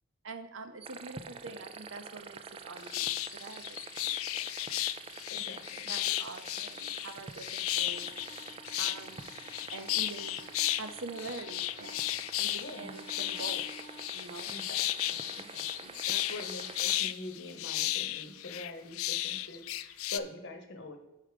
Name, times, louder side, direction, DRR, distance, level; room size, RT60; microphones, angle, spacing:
voice 1, 0.2-3.8 4.0-4.8 5.9-8.1 8.8-9.2 9.7-10.4 10.7-13.7 14.1-14.5, right 3 dB, 65° right, 9 dB, 0.7 m, -45 dB
sound 1, 0.8-17.0, right 5 dB, 25° right, 0.3 m, -47 dB
sound 2, 2.9-20.2, left 15 dB, 80° left, 0.3 m, -34 dB
voice 2, 5.3-6.0 12.6-13.0 14.5-21.0, left 2 dB, 55° left, 5 dB, 1.0 m, -45 dB
sound 3, 7.7-14.0, equal, 10° left, 1.1 m, -54 dB
7.4 x 4.7 x 5.0 m, 1.0 s
head